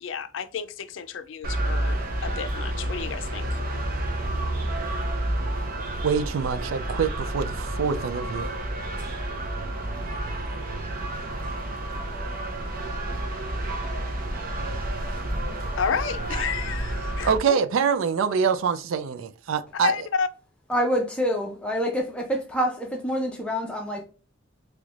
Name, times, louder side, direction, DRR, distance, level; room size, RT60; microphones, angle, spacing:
voice 1, 0.0-3.6 15.8-17.6 19.7-20.3, left 6 dB, 70° left, 0.4 m, -31 dB
sound 1, 1.4-17.4, right 1 dB, 45° right, 0.7 m, -30 dB
voice 2, 6.0-8.5 17.2-19.9, right 6 dB, 80° right, 0.4 m, -25 dB
voice 3, 20.7-24.0, equal, 5° left, 0.5 m, -26 dB
3.2 x 3.0 x 2.4 m
head